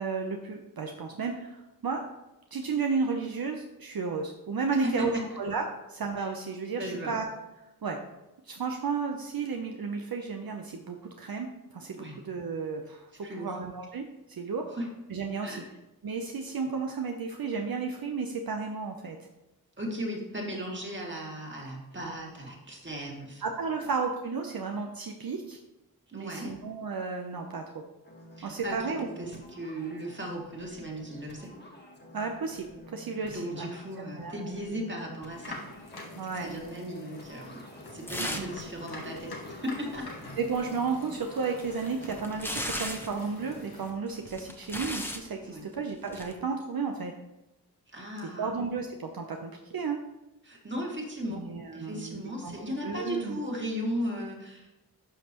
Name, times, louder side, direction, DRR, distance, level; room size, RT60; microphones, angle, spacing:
voice 1, 0.0-2.0 2.5-7.3 7.8-8.0 8.4-14.7 15.1-15.6 16.0-19.2 23.4-25.6 26.1-27.8 28.4-29.4 32.1-33.7 34.2-34.5 36.2-36.5 38.2-38.5 40.4-47.1 48.4-50.0 51.3-52.6 52.8-53.4, right 4 dB, 70° right, 3 dB, 0.7 m, -33 dB
voice 2, 4.8-5.2 6.2-6.3 6.8-7.1 11.9-12.2 13.2-13.5 14.7-14.9 15.4-15.7 19.8-23.4 26.1-26.5 28.4-31.5 33.2-35.6 36.3-37.6 37.9-40.1 45.4-45.7 47.9-48.5 50.4-51.4 51.7-54.9, equal, 30° right, -1 dB, 2.1 m, -36 dB
sound 1, 28.0-43.6, equal, 30° left, 1.5 m, -50 dB
sound 2, 35.3-43.9, left 2 dB, 90° left, 1.4 m, -46 dB
sound 3, 38.1-38.6 38.9-39.0 41.4-43.2 44.1-45.3 46.1-46.3, left 1 dB, 5° left, 0.9 m, -36 dB
11.5 x 5.4 x 3.0 m, 0.97 s
wide cardioid pair, 65°, 37 cm